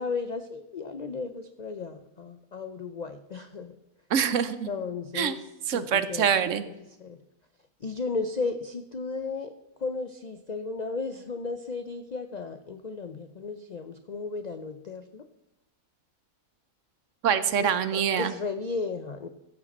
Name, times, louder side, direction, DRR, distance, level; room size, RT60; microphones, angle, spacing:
voice 1, 0.0-3.7 4.7-6.3 6.7-6.8 7.0-7.2 7.8-9.5 9.8-15.3 17.6-19.3, left 4 dB, 60° left, 8 dB, 0.4 m, -34 dB
voice 2, 4.1-4.7 5.1-5.3 5.7-6.6 17.2-18.3, right 8 dB, 65° right, 13 dB, 1.0 m, -25 dB
14.0 x 7.6 x 4.2 m, 0.91 s
omnidirectional pair, 1.5 m